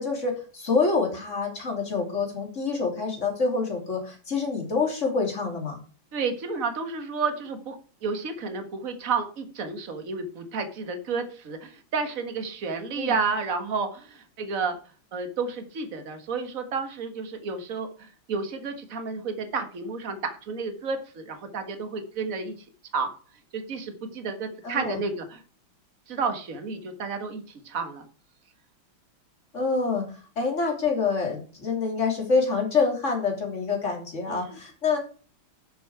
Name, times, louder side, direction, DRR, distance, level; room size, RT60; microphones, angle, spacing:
voice 1, 0.0-5.8 13.0-13.1 24.6-25.0 29.5-35.0, left 4 dB, 35° left, 2 dB, 3.4 m, -26 dB
voice 2, 6.1-7.8 8.0-14.8 15.1-22.5 22.9-23.1 23.5-25.4 26.1-28.0 34.3-34.6, right 4 dB, 40° right, 7 dB, 1.8 m, -31 dB
12.0 x 7.0 x 4.9 m, 0.38 s
omnidirectional pair, 2.3 m